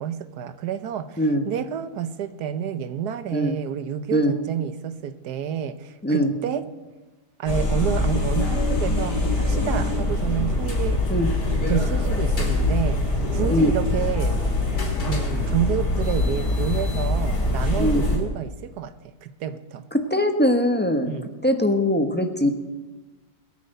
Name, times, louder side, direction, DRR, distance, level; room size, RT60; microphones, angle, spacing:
voice 1, 0.0-6.7 7.4-11.0 11.7-14.4 15.0-18.9 19.2-19.9 21.1-21.3, right 8 dB, 70° right, 1.4 m, -29 dB
sound 1, 7.5-18.2, left 2 dB, 75° left, 3.6 m, -23 dB
voice 2, 19.9-21.2 21.4-22.5, equal, 10° left, 0.8 m, -21 dB
21.0 x 8.6 x 6.6 m
omnidirectional pair, 1.8 m